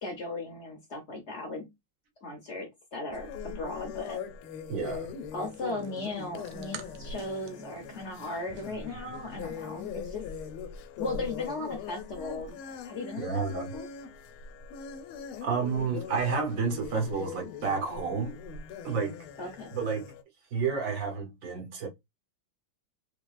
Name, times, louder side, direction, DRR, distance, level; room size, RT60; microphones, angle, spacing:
voice 1, 0.0-1.7 2.2-4.2 5.3-10.2 11.0-13.9 19.4-19.8, left 2 dB, 65° left, 0.7 m, -37 dB
sound 1, 3.1-20.2, left 7 dB, 90° left, 1.5 m, -41 dB
voice 2, 4.7-5.1 13.2-13.7 15.4-18.4 18.8-19.2 19.7-20.1 20.5-21.9, right 5 dB, 55° right, 0.9 m, -30 dB
sound 2, 5.4-9.8, right 9 dB, 75° right, 1.4 m, -49 dB
3.4 x 3.3 x 2.3 m
omnidirectional pair, 2.3 m